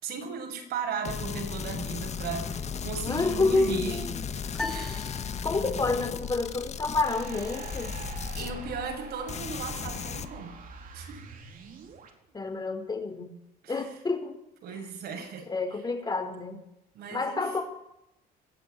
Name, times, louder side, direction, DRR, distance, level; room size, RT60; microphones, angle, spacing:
voice 1, 0.0-4.1 4.7-5.0 5.6-5.7 8.4-10.6 10.9-11.2 13.6-13.9 14.6-15.5 16.9-17.6, right 5 dB, 70° right, 3 dB, 7.4 m, -36 dB
sound 1, 1.0-9.0 9.3-10.3, left 6 dB, 40° left, 1.9 m, -36 dB
voice 2, 3.0-4.1 4.6-5.1 5.4-7.9 12.3-13.3 13.7-14.4 15.5-16.6 17.1-17.6, left 3 dB, 25° left, 6 dB, 4.4 m, -29 dB
sound 2, 4.5-6.0, left 2 dB, 5° left, 3.3 m, -38 dB
sound 3, 7.0-12.1, right 5 dB, 55° right, 4.8 m, -44 dB
22.5 x 15.5 x 10.0 m, 0.81 s
cardioid pair, 110°, 17 cm